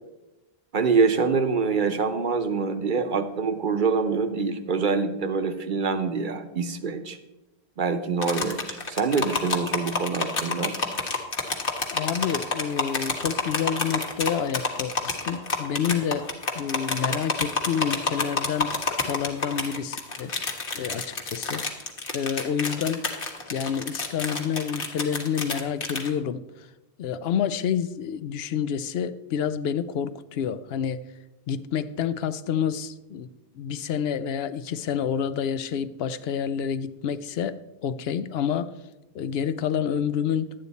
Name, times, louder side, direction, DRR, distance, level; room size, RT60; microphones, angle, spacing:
voice 1, 0.7-7.2 7.8-10.8, right 5 dB, 55° right, 8 dB, 0.9 m, -25 dB
sound 1, 8.2-26.1, left 4 dB, 60° left, 1.4 m, -29 dB
voice 2, 11.9-20.3 20.7-21.7 22.1-23.1 23.5-26.4 27.0-31.0 31.5-33.3 33.5-38.7 39.1-40.5, left 8 dB, 80° left, 13 dB, 0.8 m, -28 dB
11.5 x 8.9 x 4.1 m, 1.0 s
omnidirectional pair, 1.0 m